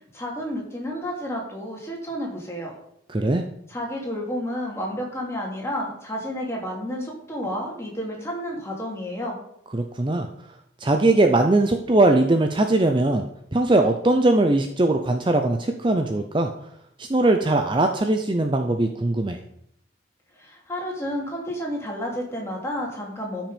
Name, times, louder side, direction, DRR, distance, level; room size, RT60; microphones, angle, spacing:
voice 1, 0.1-2.7 3.7-9.4 20.3-23.5, equal, 15° left, -2 dB, 2.8 m, -31 dB
voice 2, 3.1-3.4 9.7-10.3 10.8-16.5 17.0-19.4, right 2 dB, 25° right, 5 dB, 0.6 m, -20 dB
13.5 x 6.1 x 5.2 m, 0.71 s
head